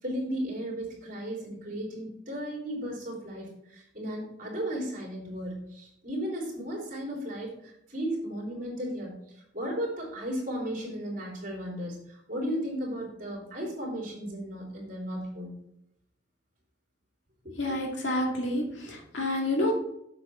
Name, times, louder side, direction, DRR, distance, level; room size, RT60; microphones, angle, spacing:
voice 1, 0.0-9.1 9.5-15.5 17.4-17.8, equal, 45° right, -3 dB, 3.3 m, -35 dB
voice 2, 17.6-19.7, left 1 dB, 75° left, 0 dB, 2.2 m, -29 dB
8.0 x 6.8 x 4.3 m, 0.78 s
head